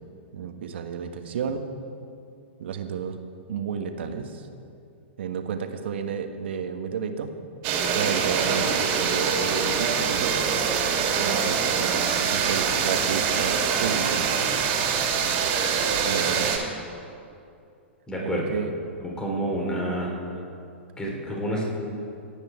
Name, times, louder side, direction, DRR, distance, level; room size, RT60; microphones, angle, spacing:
voice 1, 0.3-1.7 2.6-3.2 3.5-4.5 5.2-7.3 7.9-10.4 11.2-14.3 16.0-16.6 18.2-18.7 20.3-20.4, right 6 dB, 65° right, 6 dB, 1.5 m, -31 dB
sound 1, 7.6-16.6, right 6 dB, 40° right, 2.6 m, -24 dB
voice 2, 18.1-18.5 19.0-20.1 21.0-21.6, right 1 dB, 10° left, -2 dB, 3.9 m, -28 dB
26.0 x 9.1 x 4.7 m, 2.5 s
figure-of-eight pair, 105°, 7 cm